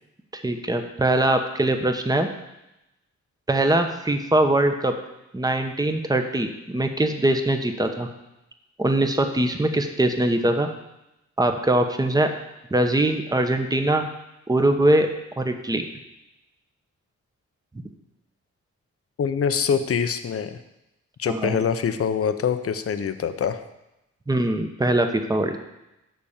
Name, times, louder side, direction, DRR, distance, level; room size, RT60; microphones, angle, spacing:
voice 1, 0.3-2.3 3.5-4.9 5.3-8.1 8.8-10.7 11.4-12.3 12.7-14.1 14.5-15.1 15.4-15.8 21.3-21.6 24.3-25.6, right 1 dB, 15° right, 6 dB, 1.0 m, -22 dB
voice 2, 19.2-20.6 21.2-23.6, left 7 dB, 50° left, 10 dB, 0.7 m, -24 dB
12.0 x 4.2 x 7.3 m, 0.92 s
cardioid pair, 100°, 29 cm